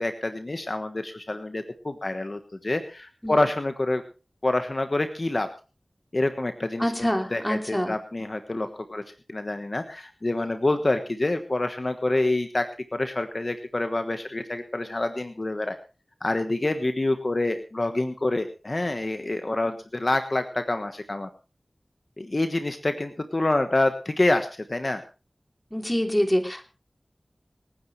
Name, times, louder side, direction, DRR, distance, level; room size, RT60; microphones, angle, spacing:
voice 1, 0.0-4.0 4.4-5.5 6.1-9.0 9.3-15.8 16.2-21.3 22.2-25.0, left 2 dB, 50° left, 8 dB, 1.3 m, -27 dB
voice 2, 6.8-7.9 8.6-8.7 19.6-19.7 25.7-26.6, equal, 10° left, 4 dB, 3.0 m, -26 dB
26.0 x 10.0 x 3.2 m, 0.32 s
wide cardioid pair, 50°, 0 cm